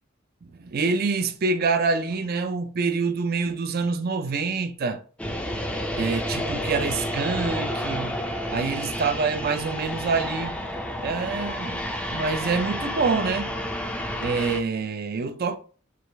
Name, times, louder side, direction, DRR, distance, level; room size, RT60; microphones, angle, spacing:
voice 1, 0.6-5.0 6.0-8.1 8.5-10.6 11.0-11.8 12.1-13.6 14.2-15.6, right 4 dB, 50° right, 0.5 m, -26 dB
sound 1, 5.2-14.6, equal, 5° left, 0.4 m, -30 dB
4.7 x 2.4 x 3.3 m
head